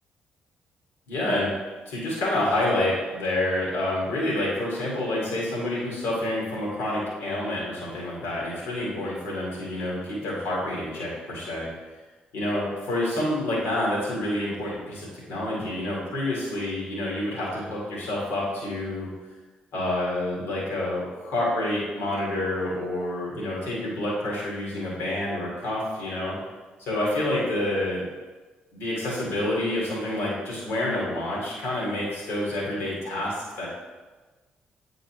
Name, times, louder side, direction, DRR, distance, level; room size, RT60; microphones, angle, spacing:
voice 1, 1.1-1.5 1.9-11.7 12.3-19.1 19.7-26.4 26.8-28.0 28.7-33.7, left 1 dB, 70° left, -5 dB, 1.9 m, -28 dB
8.7 x 4.0 x 2.9 m, 1.3 s
hypercardioid pair, 40°, 4 cm